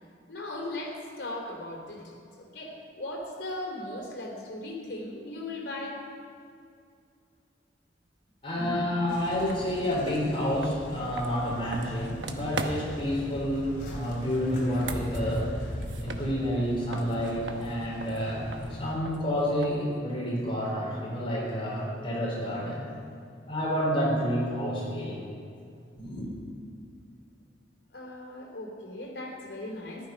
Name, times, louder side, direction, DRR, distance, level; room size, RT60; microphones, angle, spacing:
voice 1, 0.3-6.0 27.9-30.1, left 1 dB, 70° left, -1 dB, 3.2 m, -38 dB
voice 2, 8.4-22.9 23.5-25.2 26.0-26.3, equal, 30° left, -4 dB, 4.1 m, -29 dB
sound 1, 9.1-18.9, equal, 50° left, 3.0 m, -40 dB
sound 2, 9.5-9.6 10.0-13.1 14.6-16.7 16.9-20.0, right 3 dB, 85° right, 1.1 m, -40 dB
14.5 x 12.0 x 5.3 m, 2.4 s
head